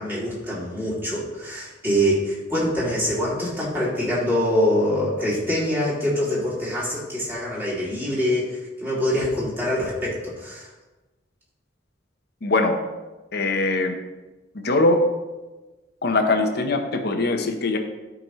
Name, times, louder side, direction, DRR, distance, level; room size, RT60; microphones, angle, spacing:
voice 1, 0.0-10.7, equal, 10° right, -8 dB, 2.6 m, -24 dB
voice 2, 12.4-12.8 13.3-14.0 14.5-15.0 16.0-17.8, left 2 dB, 60° left, 5 dB, 0.9 m, -21 dB
12.0 x 5.2 x 3.0 m, 1.2 s
head